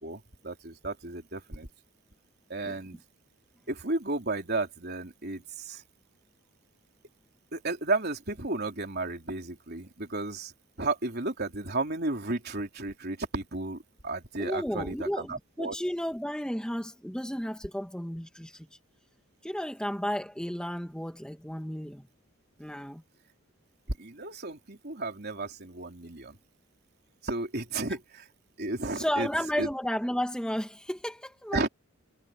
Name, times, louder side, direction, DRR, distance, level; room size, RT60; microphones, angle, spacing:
voice 1, 0.0-1.7 2.5-3.0 3.7-5.8 7.5-10.5 10.8-15.8 24.0-26.4 27.2-28.2 28.6-29.3 29.6-29.7 31.5-31.7, right 2 dB, 45° right, 3.8 m, -33 dB
voice 2, 14.4-18.7 19.4-22.1 22.6-23.0 28.9-31.7, equal, 5° left, 1.6 m, -33 dB
head